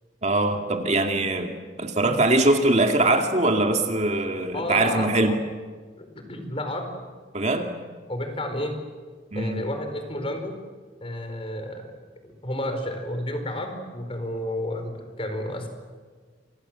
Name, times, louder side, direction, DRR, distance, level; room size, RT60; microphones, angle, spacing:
voice 1, 0.2-5.3 7.3-7.7 9.3-9.6, right 2 dB, 40° right, 4 dB, 2.3 m, -22 dB
voice 2, 4.5-5.4 6.0-7.0 8.1-8.8 9.3-10.5 11.0-11.9 12.2-15.7, left 1 dB, 30° left, 6 dB, 4.6 m, -31 dB
29.0 x 26.0 x 7.6 m, 1.5 s
head